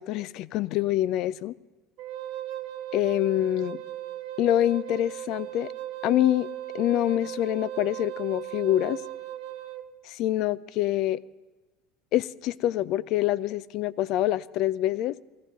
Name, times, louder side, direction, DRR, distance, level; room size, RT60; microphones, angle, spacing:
voice 1, 0.0-1.5 2.9-3.8 4.4-5.7 6.0-6.5 6.7-9.0 10.1-11.2 12.1-15.2, left 13 dB, 60° left, 19 dB, 0.5 m, -25 dB
Wind instrument woodwind instrument, 2.0-9.8, right 12 dB, 65° right, 1.2 m, -37 dB
19.0 x 15.0 x 4.0 m, 1.2 s
hypercardioid pair, 85°, 0 cm